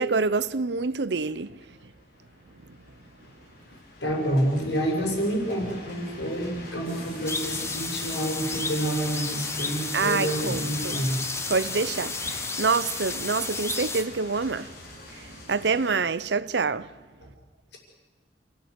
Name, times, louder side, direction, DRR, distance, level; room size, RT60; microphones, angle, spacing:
voice 1, 0.0-1.6 9.9-11.0 11.5-14.7 15.1-16.9, right 4 dB, 75° right, 0.7 m, -26 dB
sound 1, 0.7-15.9, left 2 dB, 60° left, 5.9 m, -44 dB
voice 2, 4.0-11.2, right 1 dB, 85° left, 6.4 m, -28 dB
sound 2, 7.3-14.0, left 3 dB, 15° left, 1.3 m, -32 dB
28.5 x 16.0 x 8.2 m
head